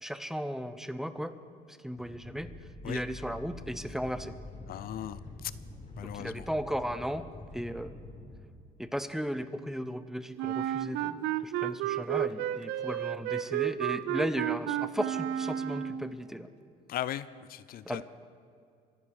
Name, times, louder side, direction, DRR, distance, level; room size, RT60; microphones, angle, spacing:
voice 1, 0.0-1.3 1.7-2.5 2.8-4.3 6.0-7.3 7.5-7.9 8.8-16.5 17.9-18.0, equal, ahead, 11 dB, 0.8 m, -36 dB
sound 1, 2.0-8.3, left 2 dB, 45° left, 4.5 m, -46 dB
voice 2, 4.7-5.5 6.0-6.5 16.9-18.0, left 12 dB, 60° left, 16 dB, 0.5 m, -38 dB
Wind instrument woodwind instrument, 10.4-16.1, right 11 dB, 85° right, 0.6 m, -32 dB
25.0 x 11.0 x 4.8 m, 2.4 s
cardioid pair, 110°, 17 cm